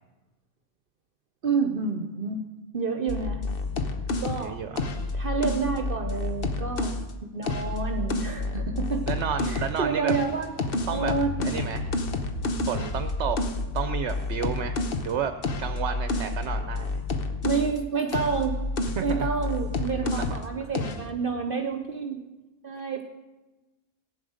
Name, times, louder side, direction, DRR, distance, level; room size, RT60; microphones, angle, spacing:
voice 1, 1.4-2.4 2.7-3.4 4.2-4.6 5.1-9.1 9.4-10.5 10.9-11.4 17.4-18.6 19.0-22.3 22.6-23.0, right 5 dB, 55° right, 5 dB, 1.0 m, -29 dB
sound 1, 3.1-7.1 7.4-9.8 10.1-17.8 18.1-20.5 20.7-21.1, left 3 dB, 55° left, 1.2 m, -29 dB
voice 2, 4.4-4.9 9.1-10.1 10.9-11.1 11.4-11.9 12.6-13.4 13.7-15.3 15.6-17.0 19.0-19.3 20.0-20.3, right 8 dB, 75° right, 9 dB, 1.0 m, -31 dB
16.0 x 9.2 x 6.4 m, 1.1 s
omnidirectional pair, 1.2 m